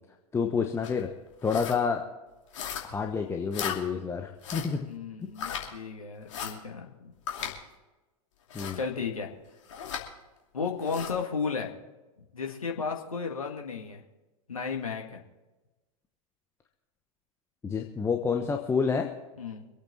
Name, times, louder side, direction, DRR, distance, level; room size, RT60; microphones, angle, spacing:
voice 1, 0.3-1.1 1.4-2.0 2.8-4.9 5.2-5.3 5.6-5.8 8.5-8.8 17.6-19.1, left 5 dB, 15° left, 3 dB, 1.1 m, -29 dB
sound 1, 0.8-1.0 1.4-1.8 2.5-3.0 3.5-3.8 4.4-4.8 5.4-5.7 6.3-6.5 7.3-7.5 8.5-8.8 9.7-10.0 10.8-11.1, left 8 dB, 60° left, 2.7 m, -36 dB
voice 2, 4.9-7.1 8.7-9.3 10.5-11.7 12.3-14.0 14.5-15.2 19.4-19.7, left 5 dB, 75° left, 2 dB, 1.9 m, -34 dB
26.0 x 8.7 x 4.1 m, 1.1 s
figure-of-eight pair, 90°, 18 cm